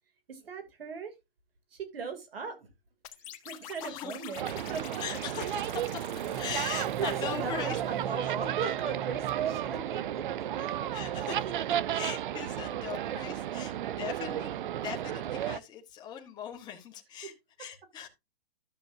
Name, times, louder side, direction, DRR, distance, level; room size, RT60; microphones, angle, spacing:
voice 1, 0.3-1.1 1.7-2.6 3.4-4.8 6.4-6.6 7.0-10.2, right 5 dB, 70° right, 2.9 m, -38 dB
sound 1, 3.0-7.9, left 13 dB, 35° left, 1.4 m, -48 dB
voice 2, 3.8-4.4 5.0-6.0 6.3-7.8 8.2-8.3 10.6-18.1, left 8 dB, 15° left, 1.3 m, -40 dB
sound 2, 4.4-15.6, right 11 dB, 55° right, 0.6 m, -33 dB
sound 3, 6.2-11.6, right 10 dB, 35° right, 1.0 m, -40 dB
12.5 x 8.1 x 2.7 m
hypercardioid pair, 150°, 30 cm